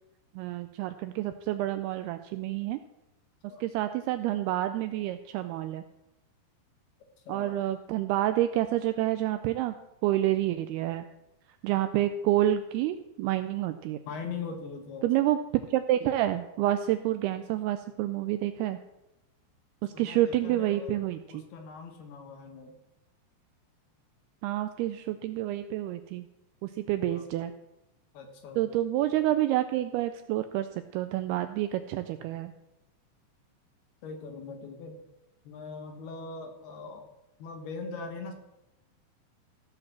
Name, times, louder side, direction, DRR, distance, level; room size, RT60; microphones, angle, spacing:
voice 1, 0.3-2.8 3.6-5.8 7.3-9.7 10.0-11.1 11.6-14.0 15.0-15.4 15.7-18.8 19.8-21.4 24.4-26.3 26.6-27.5 28.6-32.5, right 13 dB, 85° right, 10 dB, 2.3 m, -28 dB
voice 2, 7.3-7.6 8.7-8.8 14.1-15.3 19.9-21.0 21.3-22.7 27.1-27.3 28.1-29.1 34.0-35.0 35.4-37.1 37.4-38.3, left 4 dB, 70° left, 5 dB, 3.1 m, -41 dB
15.0 x 5.1 x 7.4 m, 0.94 s
omnidirectional pair, 5.0 m